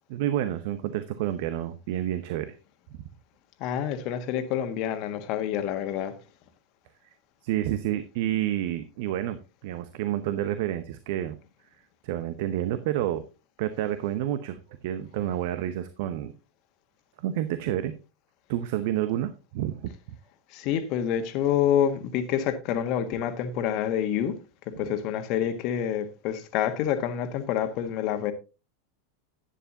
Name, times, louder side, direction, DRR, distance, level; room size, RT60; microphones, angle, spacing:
voice 1, 0.1-2.6 7.4-11.4 12.0-13.2 13.6-16.3 17.2-17.9 18.5-19.9, right 12 dB, 60° right, 0.8 m, -29 dB
voice 2, 3.6-6.1 20.5-24.4 24.8-28.3, left 9 dB, 50° left, 1.4 m, -27 dB
11.0 x 10.0 x 2.8 m
hypercardioid pair, 90°, 0 cm